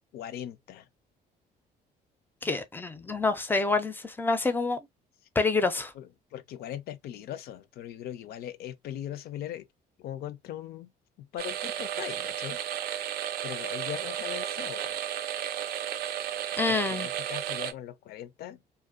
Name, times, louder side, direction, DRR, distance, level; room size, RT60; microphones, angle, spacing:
voice 1, 0.1-0.9 3.0-3.2 5.9-9.7 10.0-10.9 11.2-12.6 13.4-15.0 16.7-18.6, left 11 dB, 65° left, 0.4 m, -40 dB
voice 2, 2.4-4.8 5.4-5.9 16.6-17.1, left 3 dB, 10° left, 0.5 m, -27 dB
sound 1, 11.4-17.7, right 10 dB, 70° right, 0.4 m, -33 dB
2.5 x 2.1 x 2.4 m
cardioid pair, 110°, 17 cm